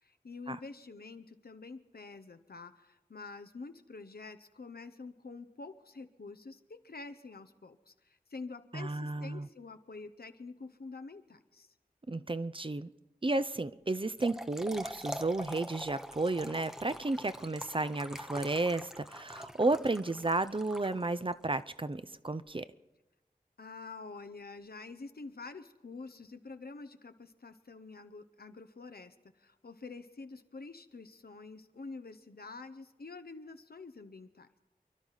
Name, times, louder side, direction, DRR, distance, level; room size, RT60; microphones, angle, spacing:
voice 1, 0.0-11.7 23.6-34.5, left 3 dB, 80° left, 9 dB, 0.8 m, -47 dB
voice 2, 8.7-9.5 12.1-12.9 13.2-22.7, right 2 dB, 35° right, 13 dB, 0.5 m, -32 dB
Trickle dribble / Fill (with liquid), 13.9-21.4, equal, 5° right, 0.8 m, -44 dB
28.5 x 11.5 x 4.1 m, 1.0 s
wide cardioid pair, 50°, 16 cm